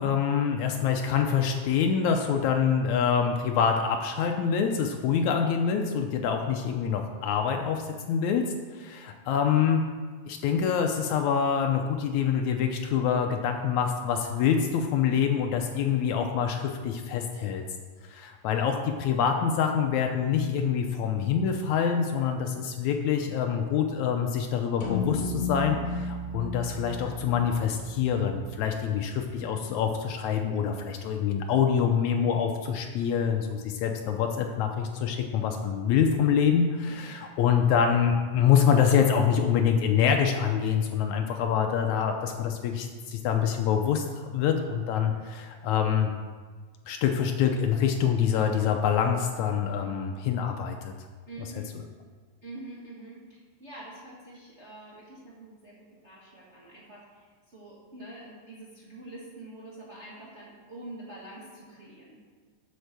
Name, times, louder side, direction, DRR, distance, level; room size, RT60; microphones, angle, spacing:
voice 1, 0.0-8.4 8.7-9.8 10.2-17.6 18.0-44.0 44.3-46.1 46.9-50.9, left 7 dB, 85° left, 4 dB, 1.6 m, -25 dB
sound 1, 24.8-29.3, left 2 dB, 65° left, 2.5 m, -34 dB
voice 2, 36.8-37.2 49.8-50.1 51.3-51.7 52.4-62.2, right 2 dB, 45° right, -6 dB, 0.9 m, -46 dB
8.0 x 6.4 x 6.7 m, 1.5 s
omnidirectional pair, 4.0 m